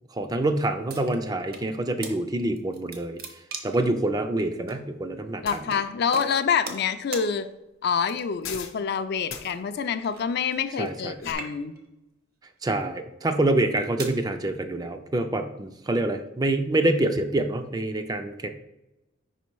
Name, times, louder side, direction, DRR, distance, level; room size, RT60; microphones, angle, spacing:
voice 1, 0.1-3.2 3.6-5.4 10.8-11.1 12.6-18.5, right 2 dB, 20° right, 7 dB, 0.3 m, -26 dB
sound 1, 0.9-1.7 2.0-2.2 2.6-3.9 4.7-4.8 5.7-5.8 6.1-6.9 7.1-7.3 8.0-8.5 9.4-11.0 11.3-11.9 12.6-12.8 13.5-14.2, right 4 dB, 50° right, 0.8 m, -39 dB
sound 2, 5.4-5.6 8.4-8.8 9.3-9.5 10.9-11.3, left 7 dB, 80° left, 0.7 m, -37 dB
voice 2, 5.4-7.5 7.8-11.7, left 6 dB, 55° left, 10 dB, 0.4 m, -26 dB
5.1 x 4.1 x 4.6 m, 0.96 s
head